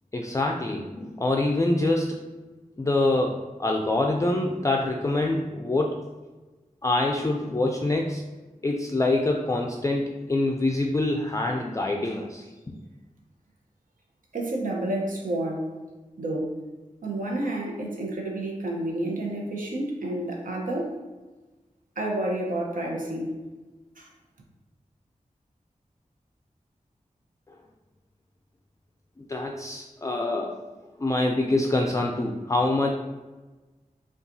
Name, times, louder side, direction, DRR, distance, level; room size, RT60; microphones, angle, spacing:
voice 1, 0.1-2.2 2.8-3.3 3.6-5.9 6.8-8.2 8.6-12.7 29.2-30.6 31.0-32.9, left 2 dB, 25° left, 0 dB, 0.3 m, -25 dB
voice 2, 14.3-15.7 16.2-16.6 17.0-20.9 22.0-23.4 24.0-24.1, right 1 dB, 80° right, 0 dB, 0.8 m, -30 dB
5.3 x 2.4 x 2.6 m, 1.2 s
wide cardioid pair, 70°, 14 cm